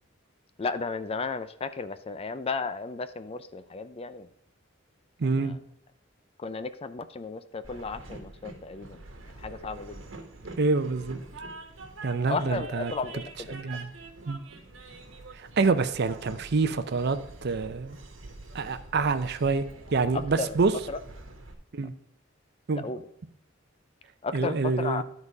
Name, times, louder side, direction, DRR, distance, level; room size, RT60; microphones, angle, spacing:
voice 1, 0.6-4.3 5.2-5.6 6.4-9.0 9.4-10.0 12.3-13.6 20.1-20.6 20.9-21.0 22.7-23.1 24.2-25.0, left 4 dB, 30° left, 12 dB, 0.4 m, -34 dB
voice 2, 5.2-5.6 10.6-11.2 12.0-12.9 13.5-13.9 14.3-14.4 15.3-18.0 18.5-20.7 21.7-21.9 22.7-22.8 24.3-25.0, right 4 dB, 55° right, 11 dB, 0.6 m, -27 dB
Train, 7.6-21.5, right 2 dB, 75° right, 1.4 m, -45 dB
12.0 x 4.1 x 4.8 m, 0.73 s
head